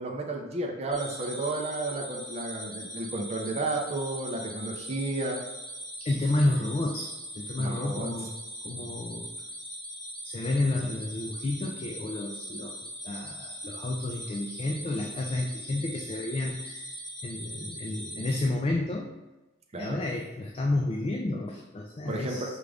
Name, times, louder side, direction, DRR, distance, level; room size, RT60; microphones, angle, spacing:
voice 1, 0.0-5.4 7.6-8.1 19.7-20.0 22.1-22.6, right 2 dB, 35° right, 1 dB, 0.5 m, -32 dB
sound 1, 0.9-18.4, equal, ahead, 1.4 m, -41 dB
voice 2, 6.0-8.3 8.6-9.3 10.2-12.7 13.0-19.1 19.8-22.6, left 2 dB, 30° left, 1 dB, 0.3 m, -31 dB
4.9 x 2.5 x 3.3 m, 1.1 s
head